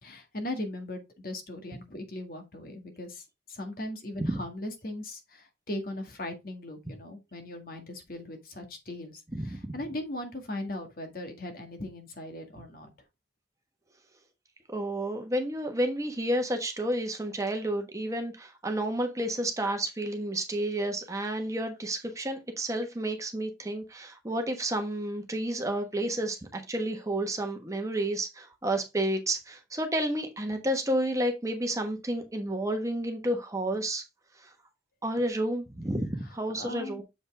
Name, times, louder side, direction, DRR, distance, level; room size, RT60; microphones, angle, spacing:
voice 1, 0.0-12.9 36.6-37.0, left 1 dB, 55° left, 1.7 m, -39 dB
voice 2, 9.3-9.8 14.7-34.0 34.4-34.5 35.0-37.0, right 1 dB, 20° right, 1.2 m, -31 dB
7.1 x 5.4 x 3.4 m
head